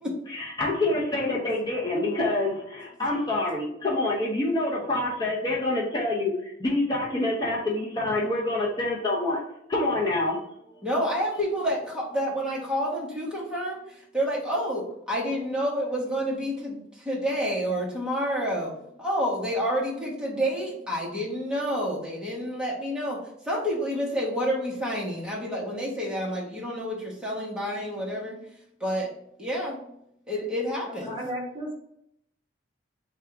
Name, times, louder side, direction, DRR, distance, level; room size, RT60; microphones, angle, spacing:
voice 1, 0.3-9.4 9.7-10.4, left 2 dB, 20° left, -4 dB, 0.6 m, -26 dB
voice 2, 10.8-23.2 23.4-28.4 28.8-29.1 29.4-29.9 30.3-31.2, equal, 5° right, -4 dB, 1.1 m, -29 dB
voice 3, 30.9-31.7, equal, 25° right, -4 dB, 1.1 m, -34 dB
3.5 x 2.4 x 4.4 m, 0.76 s
head